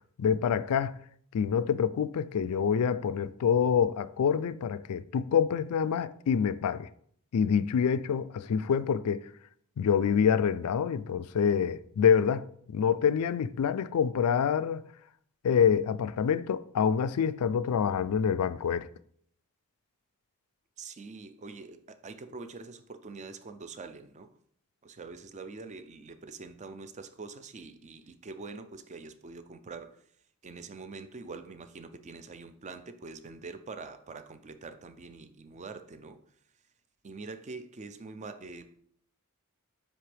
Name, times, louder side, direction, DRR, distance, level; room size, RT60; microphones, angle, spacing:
voice 1, 0.2-1.0 1.3-6.9 7.3-9.2 9.8-12.4 12.7-14.8 15.4-18.9, left 7 dB, 85° left, 0.4 m, -26 dB
voice 2, 20.8-24.3 24.8-30.0 30.4-36.2 37.0-38.8, right 4 dB, 30° right, 0.4 m, -44 dB
9.3 x 3.4 x 3.4 m
head